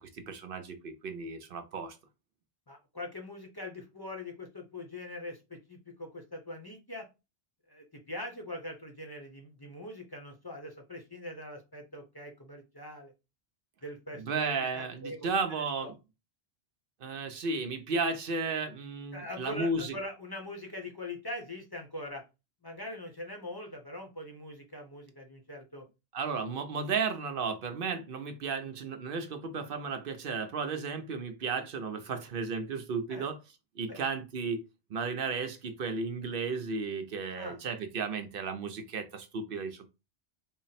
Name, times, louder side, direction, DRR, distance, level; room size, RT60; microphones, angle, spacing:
voice 1, 0.0-2.0 14.2-15.9 17.0-19.9 26.1-33.4 33.8-39.9, right 4 dB, 60° right, 7 dB, 0.7 m, -34 dB
voice 2, 2.7-7.1 7.7-13.1 13.8-15.9 19.1-22.2 22.6-25.9 33.1-33.3 33.9-34.0 37.4-37.6, left 1 dB, 25° left, 2 dB, 0.7 m, -42 dB
3.9 x 2.0 x 4.0 m, 0.27 s
omnidirectional pair, 1.2 m